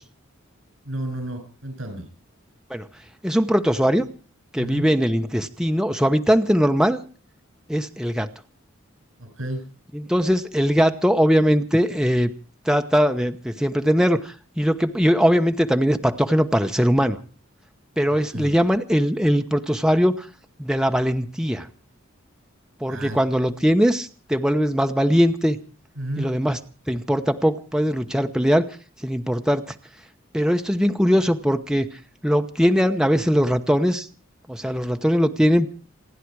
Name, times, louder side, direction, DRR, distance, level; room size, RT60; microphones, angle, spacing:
voice 1, 0.8-2.1 4.6-4.9 9.2-9.6 18.1-18.5 22.9-23.2 26.0-26.3, right 1 dB, 75° right, 7 dB, 7.5 m, -31 dB
voice 2, 3.2-4.0 4.5-7.0 7.7-8.3 9.9-12.3 12.7-17.2 18.0-20.3 20.6-21.7 22.8-25.6 26.2-26.6 26.9-28.7 29.0-29.7 30.3-31.9 32.2-34.1 34.5-35.7, equal, 5° right, 6 dB, 0.9 m, -20 dB
28.0 x 10.0 x 4.8 m, 0.39 s
head